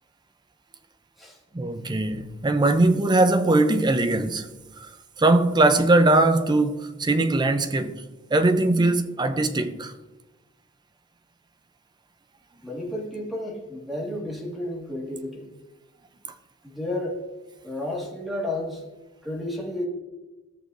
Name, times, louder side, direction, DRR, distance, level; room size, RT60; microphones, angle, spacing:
voice 1, 1.5-4.5 4.8-4.9 5.2-8.0 8.3-9.9, right 2 dB, 20° right, 0.5 m, -21 dB
voice 2, 12.6-15.5 16.6-17.2 17.6-18.8 19.2-19.9, left 1 dB, ahead, 1.8 m, -32 dB
14.5 x 6.4 x 2.6 m
head